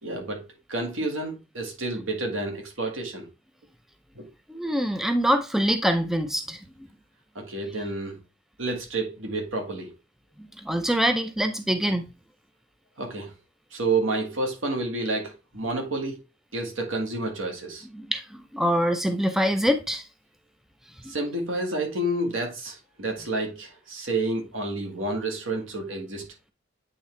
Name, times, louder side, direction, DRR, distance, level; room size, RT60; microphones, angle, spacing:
voice 1, 0.0-3.3 4.2-4.3 7.4-8.2 8.6-9.9 13.0-13.3 13.7-16.2 16.5-17.9 21.1-26.2, right 2 dB, 75° right, 1.8 m, -29 dB
voice 2, 4.5-6.6 10.4-12.0 17.9-20.0, equal, ahead, 0.5 m, -24 dB
8.5 x 3.6 x 3.2 m
head